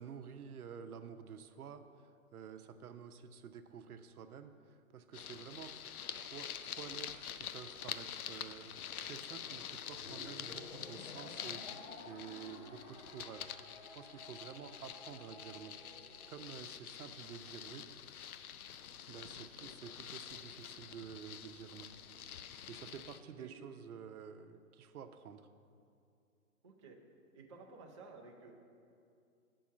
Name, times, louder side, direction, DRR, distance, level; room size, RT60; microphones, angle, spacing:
voice 1, 0.0-5.8 6.1-13.6 13.9-17.9 19.1-21.9 22.1-22.3 22.7-25.5, right 7 dB, 75° right, 9 dB, 0.7 m, -50 dB
sound 1, 5.1-23.2, left 9 dB, 70° left, 0.6 m, -47 dB
sound 2, 9.9-16.4, left 2 dB, 45° left, 1.0 m, -53 dB
voice 2, 26.6-27.0 27.3-28.5, right 4 dB, 20° right, -1 dB, 0.4 m, -54 dB
7.0 x 5.4 x 7.3 m, 2.5 s
hypercardioid pair, 140°, 45 cm